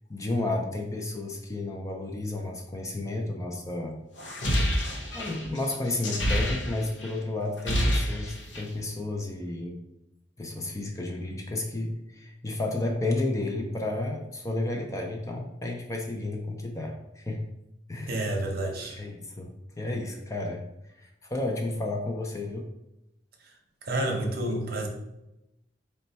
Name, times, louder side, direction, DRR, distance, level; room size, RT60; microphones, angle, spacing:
voice 1, 0.1-4.0 5.1-9.8 10.4-17.4 17.9-18.2 18.9-20.6 21.0-22.7 24.5-24.6, left 2 dB, 15° left, 1 dB, 0.4 m, -32 dB
sound 1, 4.2-7.1 7.4-8.8, equal, 70° left, 0.7 m, -28 dB
voice 2, 18.1-19.0 23.4-23.5 23.8-24.9, right 1 dB, 55° right, 1 dB, 0.8 m, -29 dB
4.2 x 2.3 x 4.0 m, 0.88 s
head